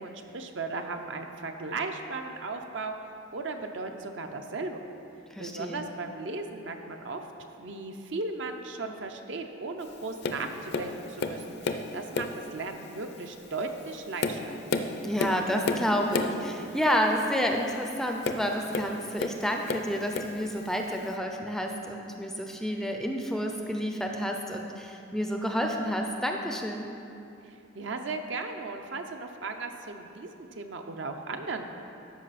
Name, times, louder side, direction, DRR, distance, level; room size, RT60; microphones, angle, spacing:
voice 1, 0.0-4.8 5.4-7.3 7.6-14.6 27.5-31.7, right 3 dB, 60° right, 5 dB, 0.6 m, -36 dB
voice 2, 5.3-5.9 15.0-26.9, equal, ahead, 2 dB, 0.4 m, -30 dB
Tap, 10.2-10.5 10.7-11.9 12.1-12.5 13.1-13.3 13.9-16.4 18.2-19.4 19.7-20.4 21.1-21.2, left 3 dB, 55° left, 0.5 m, -31 dB
13.0 x 5.4 x 4.1 m, 2.7 s
head